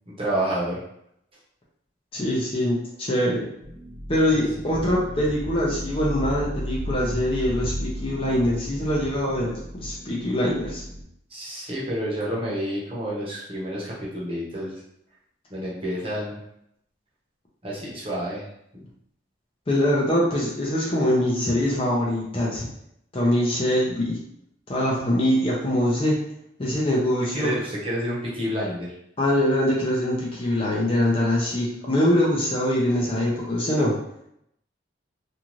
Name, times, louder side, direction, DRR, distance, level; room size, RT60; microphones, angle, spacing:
voice 1, 0.2-0.8 4.3-4.5 11.3-14.8 15.5-16.4 17.6-18.5 18.7-18.8 27.3-28.9, equal, 30° right, -5 dB, 0.8 m, -29 dB
voice 2, 2.1-3.5 4.1-10.8 19.7-22.7 23.1-24.2 24.7-26.2 26.6-27.5 29.2-34.0, left 1 dB, 30° left, -4 dB, 0.5 m, -23 dB
sound 1, 3.6-11.0, equal, 65° right, 1.1 m, -34 dB
2.6 x 2.4 x 3.0 m, 0.76 s
head